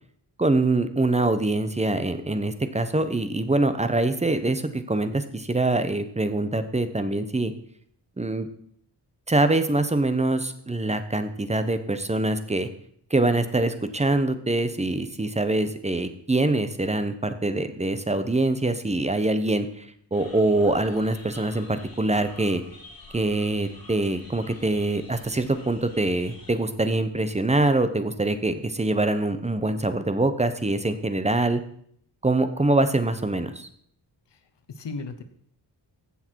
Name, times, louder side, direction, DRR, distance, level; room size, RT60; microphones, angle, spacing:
voice 1, 0.4-7.5 8.2-8.5 9.3-12.7 13.1-19.7 20.1-22.6 23.1-31.6 32.2-33.7, right 2 dB, 15° right, 10 dB, 0.8 m, -24 dB
sound 1, 20.1-26.5, left 3 dB, 55° left, 2.8 m, -48 dB
voice 2, 34.3-35.2, left 3 dB, 75° left, 9 dB, 1.1 m, -37 dB
15.5 x 6.5 x 4.6 m, 0.64 s
wide cardioid pair, 140°, 42 cm